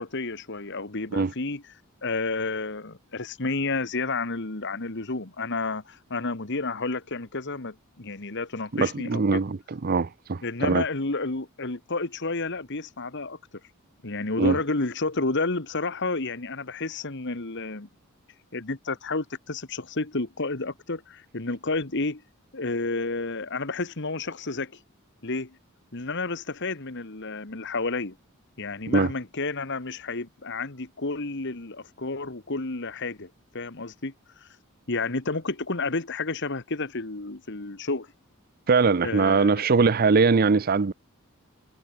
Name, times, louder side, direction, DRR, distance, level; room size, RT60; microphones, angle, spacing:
voice 1, 0.0-1.6 2.0-9.4 10.4-13.4 14.0-17.9 18.5-22.2 22.5-24.8 25.2-25.6 25.9-28.2 28.6-34.1 34.4-34.5 34.9-38.1 39.0-39.7, left 3 dB, 55° left, 1.8 m, -31 dB
voice 2, 8.7-10.8 14.4-14.6 28.9-29.1 38.7-40.9, right 4 dB, 45° right, 0.6 m, -22 dB
head